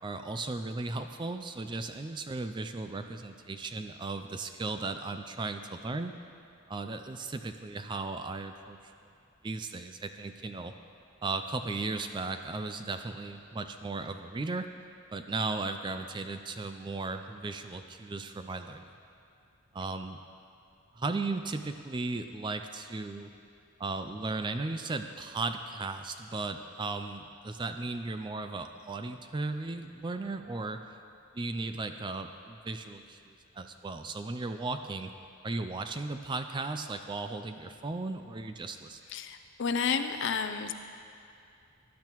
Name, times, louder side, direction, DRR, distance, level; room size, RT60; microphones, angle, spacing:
voice 1, 0.0-6.2 6.7-8.8 9.4-10.7 11.2-14.7 15.1-18.9 19.7-20.2 20.9-23.3 23.8-31.0 31.3-35.1 35.4-39.0, right 3 dB, 20° right, 8 dB, 0.3 m, -36 dB
voice 2, 39.1-40.7, left 6 dB, 55° left, 8 dB, 0.5 m, -31 dB
16.5 x 10.5 x 3.0 m, 2.5 s
head